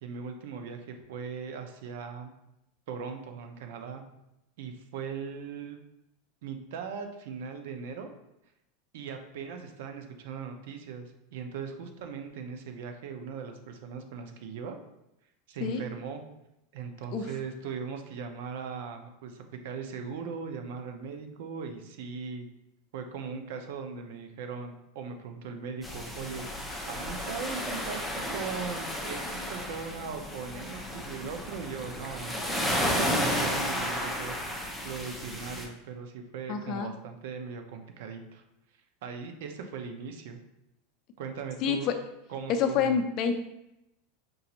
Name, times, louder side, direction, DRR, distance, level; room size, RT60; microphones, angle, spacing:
voice 1, 0.0-2.3 2.9-4.0 4.6-5.8 6.4-8.1 8.9-14.8 15.5-16.2 16.7-22.5 22.9-26.5 26.9-34.3 34.8-38.4 39.0-40.4 41.2-41.9 42.3-43.0, right 6 dB, 70° right, 6 dB, 0.7 m, -39 dB
sound 1, 25.8-35.7, equal, ahead, 0.7 m, -33 dB
voice 2, 36.5-36.9 41.6-41.9 42.5-43.3, left 7 dB, 40° left, 7 dB, 0.5 m, -27 dB
5.3 x 2.5 x 2.9 m, 0.87 s
supercardioid pair, 145°, 0 cm